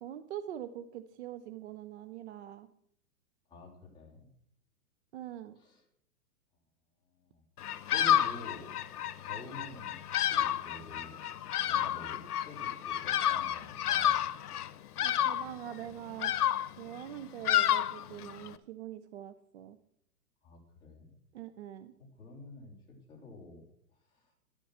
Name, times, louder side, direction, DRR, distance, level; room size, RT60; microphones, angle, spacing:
voice 1, 0.0-2.7 5.1-5.6 15.0-16.3 16.8-19.8 21.3-21.9, right 11 dB, 50° right, 11 dB, 0.6 m, -43 dB
voice 2, 3.5-4.3 5.5-5.8 7.1-7.4 7.8-8.7 9.2-10.0 10.3-11.2 11.7-14.3 20.4-21.2 22.0-23.6 24.0-24.3, left 2 dB, 10° left, -3 dB, 2.6 m, -49 dB
Bird vocalization bird call bird song, 7.6-18.5, left 11 dB, 90° left, 0.8 m, -31 dB
11.5 x 7.2 x 6.0 m, 0.72 s
hypercardioid pair, 155°, 44 cm